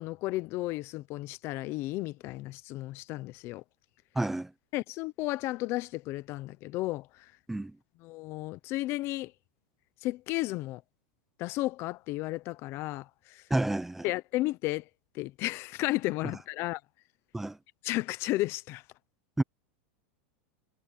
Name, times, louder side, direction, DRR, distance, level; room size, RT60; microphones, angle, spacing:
voice 1, 0.0-3.6 4.7-7.3 8.0-9.3 10.0-10.8 11.4-13.4 14.0-14.9 15.1-16.8 17.8-18.8, left 18 dB, 40° left, 0.8 m, -33 dB
voice 2, 4.1-4.5 7.5-7.8 13.5-14.1 17.3-17.6 19.4-19.5, right 2 dB, 5° right, 0.7 m, -29 dB
supercardioid pair, 145°, 7 cm